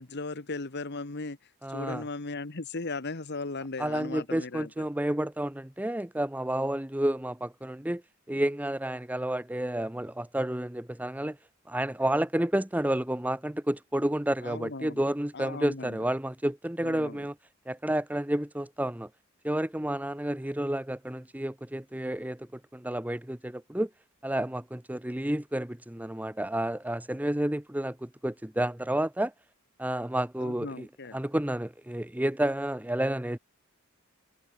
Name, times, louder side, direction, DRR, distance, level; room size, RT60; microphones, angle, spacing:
voice 1, 0.0-4.9 14.4-15.0 15.3-16.0 16.8-17.2 30.4-31.2, left 3 dB, 50° left, 1.4 m, -37 dB
voice 2, 1.6-2.0 3.8-8.0 8.3-11.4 11.7-17.4 17.7-19.1 19.4-23.9 24.2-29.3 29.8-33.4, right 1 dB, 5° right, 0.8 m, -30 dB
head